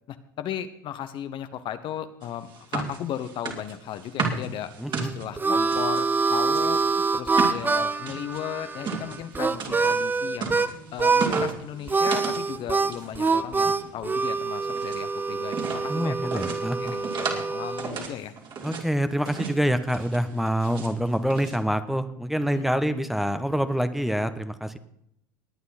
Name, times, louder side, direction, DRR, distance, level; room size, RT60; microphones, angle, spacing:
voice 1, 0.1-10.6 10.9-18.3 22.5-22.6, left 10 dB, 50° left, 10 dB, 1.0 m, -36 dB
sound 1, 2.2-6.0 6.5-12.5 12.7-13.3 13.6-15.0 15.5-15.9 16.3-17.5 17.8-18.9 19.3-19.6 19.9-20.9 21.3-21.6, right 5 dB, 45° right, 3.1 m, -34 dB
voice 2, 4.8-5.1 15.9-16.8 18.6-24.8, equal, ahead, 10 dB, 1.1 m, -26 dB
Harmonica, 4.9-10.7 11.0-11.5 11.9-17.9, right 4 dB, 15° right, 0.8 m, -25 dB
Female speech woman speaking, 9.5-18.3, right 3 dB, 80° right, 7.0 m, -52 dB
20.0 x 9.4 x 4.2 m, 0.74 s
hypercardioid pair, 75°, 11 cm